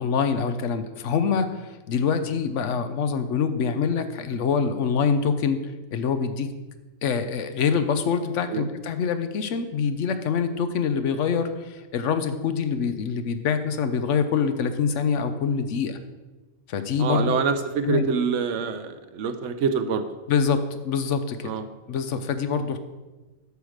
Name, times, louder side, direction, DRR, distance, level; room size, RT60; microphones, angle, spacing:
voice 1, 0.0-1.6 1.9-5.6 5.9-6.5 7.0-16.0 16.7-17.4 17.8-18.1 20.3-21.5 21.9-22.8, left 6 dB, 75° left, 9 dB, 1.0 m, -25 dB
voice 2, 17.0-20.0 21.4-21.6, right 6 dB, 75° right, 9 dB, 1.0 m, -26 dB
8.1 x 4.9 x 6.4 m, 1.2 s
omnidirectional pair, 1.3 m